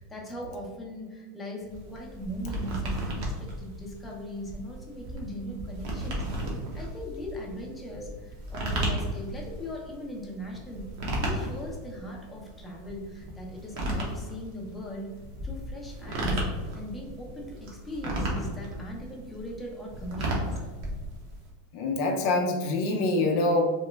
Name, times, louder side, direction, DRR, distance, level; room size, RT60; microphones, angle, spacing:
voice 1, 0.0-6.3 6.7-15.1 15.4-20.6, equal, 10° left, -2 dB, 0.6 m, -39 dB
sound 1, 1.7-21.5, right 1 dB, 60° right, 0.8 m, -34 dB
voice 2, 21.7-23.6, left 2 dB, 60° left, 2 dB, 0.4 m, -25 dB
2.9 x 2.1 x 3.3 m, 1.3 s
supercardioid pair, 135°, 0 cm